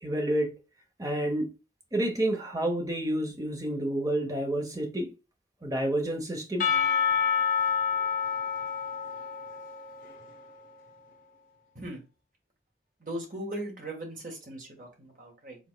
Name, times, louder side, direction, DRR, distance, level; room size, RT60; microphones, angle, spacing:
voice 1, 0.0-0.5 1.0-1.5 1.9-5.1 5.6-6.7, right 1 dB, 20° right, 0.8 m, -29 dB
Percussion / Church bell, 6.6-10.6, left 7 dB, 50° left, 0.7 m, -28 dB
voice 2, 13.0-15.6, right 1 dB, 50° right, 1.5 m, -38 dB
4.9 x 3.4 x 2.2 m
head